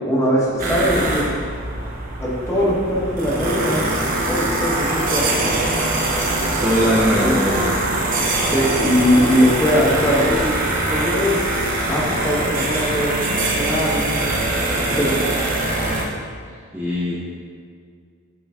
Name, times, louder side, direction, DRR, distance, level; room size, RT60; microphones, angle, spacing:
voice 1, 0.1-1.3 2.2-3.9 4.3-5.6 7.2-7.3 8.4-10.5 10.9-11.3 11.9-13.1 13.5-14.1 14.7-15.3, equal, 15° left, -6 dB, 1.2 m, -20 dB
sound 1, 0.6-16.0, right 2 dB, 40° right, 0.9 m, -22 dB
voice 2, 6.6-7.9 16.7-17.2, equal, 10° right, -8 dB, 0.8 m, -20 dB
8.6 x 3.9 x 3.6 m, 2.1 s
head